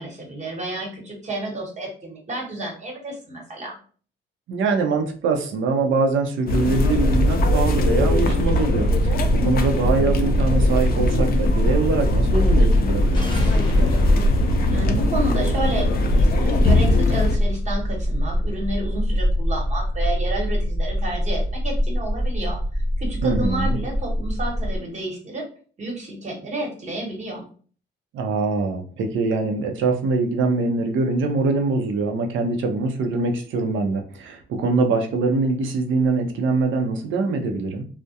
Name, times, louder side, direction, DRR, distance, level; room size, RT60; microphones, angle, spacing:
voice 1, 0.0-3.8 14.7-22.6 23.0-25.5 25.8-27.5, right 1 dB, 35° right, 0 dB, 1.1 m, -30 dB
voice 2, 4.5-9.2 9.4-13.9 23.2-23.8 28.1-37.8, right 3 dB, 75° right, 4 dB, 0.6 m, -23 dB
sound 1, 6.5-17.4, left 2 dB, 50° left, 0.4 m, -21 dB
sound 2, 6.9-24.8, equal, 10° right, 0.5 m, -24 dB
sound 3, 12.9-17.8, left 1 dB, 20° left, 0.8 m, -29 dB
2.3 x 2.1 x 2.7 m, 0.42 s
cardioid pair, 90°, 20 cm